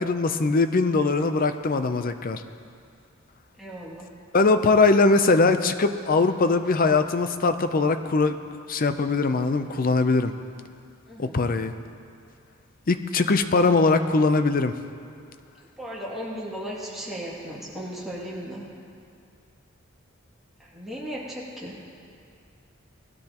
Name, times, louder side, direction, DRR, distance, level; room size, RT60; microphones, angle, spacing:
voice 1, 0.0-2.4 4.3-8.4 8.7-10.3 11.2-11.7 12.9-14.7, left 3 dB, 45° left, 9 dB, 0.6 m, -21 dB
voice 2, 3.6-4.1 11.1-11.4 15.8-18.6 20.6-21.8, equal, ahead, -7 dB, 2.4 m, -36 dB
19.5 x 12.5 x 3.0 m, 2.4 s
head